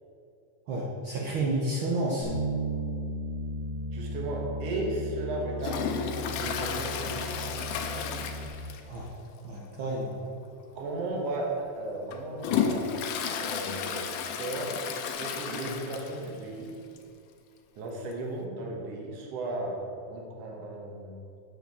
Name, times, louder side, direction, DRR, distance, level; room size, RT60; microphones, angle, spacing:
voice 1, 0.7-2.3 8.9-9.1 9.4-10.2, right 2 dB, 75° right, -3 dB, 1.1 m, -30 dB
Bass guitar, 2.2-8.5, right 1 dB, 30° left, 2.0 m, -35 dB
voice 2, 3.9-8.3 10.8-13.0 13.4-14.1 14.4-14.8 15.2-16.7 17.8-19.8 20.1-21.2, right 2 dB, 60° right, -1 dB, 2.2 m, -35 dB
Toilet flush, 5.6-9.1 9.3-9.4 9.9-10.0 10.8-10.9 11.5-16.4 16.7-16.8 17.0-17.1 18.1-18.2, left 7 dB, 90° left, 2.2 m, -33 dB
8.0 x 4.9 x 6.8 m, 2.5 s
omnidirectional pair, 3.5 m